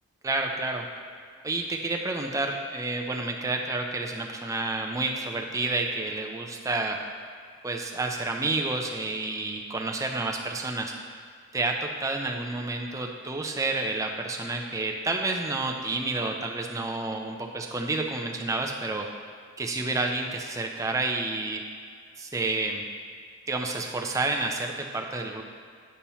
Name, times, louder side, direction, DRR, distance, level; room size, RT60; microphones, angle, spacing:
voice 1, 0.2-0.9 1.4-7.0 7.6-10.9 11.5-19.1 19.6-21.6 22.2-22.8 23.5-25.4, right 2 dB, 15° right, 2 dB, 0.4 m, -29 dB
8.4 x 2.9 x 5.5 m, 2.1 s
head